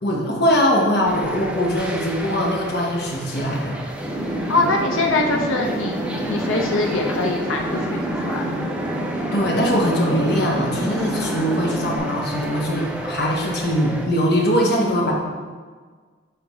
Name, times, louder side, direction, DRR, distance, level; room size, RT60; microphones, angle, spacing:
voice 1, 0.0-3.8 9.3-15.1, equal, 50° left, -2 dB, 1.1 m, -21 dB
sound 1, 1.0-14.1, right 1 dB, 5° right, 0.4 m, -33 dB
sound 2, 4.0-12.0, right 1 dB, 25° right, 1.6 m, -27 dB
voice 2, 4.5-8.4, left 2 dB, 80° left, 1 dB, 0.6 m, -23 dB
9.1 x 3.7 x 3.1 m, 1.5 s
head